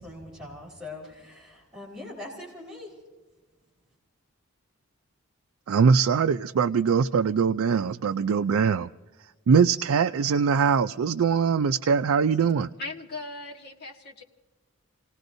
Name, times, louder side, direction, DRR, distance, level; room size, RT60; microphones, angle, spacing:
voice 1, 0.0-3.0, left 2 dB, 5° right, -4 dB, 4.0 m, -42 dB
voice 2, 5.7-8.9 9.5-12.7, right 6 dB, 80° right, 7 dB, 0.4 m, -22 dB
voice 3, 12.8-14.2, left 2 dB, 50° left, -1 dB, 1.7 m, -38 dB
29.0 x 18.5 x 2.6 m, 1.2 s
head